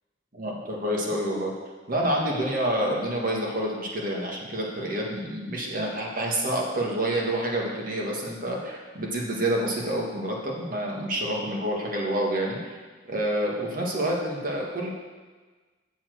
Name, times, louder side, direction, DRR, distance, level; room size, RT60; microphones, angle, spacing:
voice 1, 0.3-1.5 1.9-12.8 13.1-14.9, right 1 dB, 45° right, -2 dB, 1.7 m, -28 dB
7.3 x 7.2 x 6.2 m, 1.3 s
head